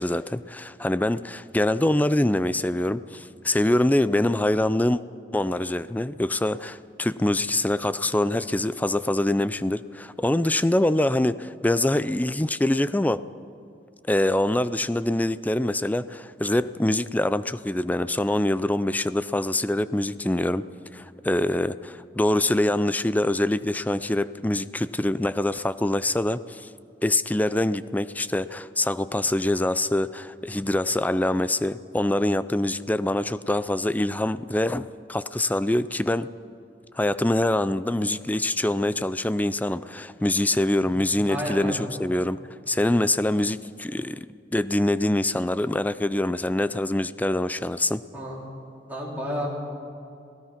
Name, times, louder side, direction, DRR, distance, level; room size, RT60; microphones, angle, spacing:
voice 1, 0.0-5.0 5.3-13.3 14.1-20.7 20.9-26.7 27.0-36.3 36.9-42.4 42.7-44.3 44.5-48.0, left 1 dB, 10° left, 15 dB, 0.4 m, -24 dB
voice 2, 40.8-41.9 48.1-48.4 48.9-49.5, equal, 10° right, -5 dB, 4.1 m, -32 dB
26.5 x 17.0 x 5.9 m, 2.5 s
head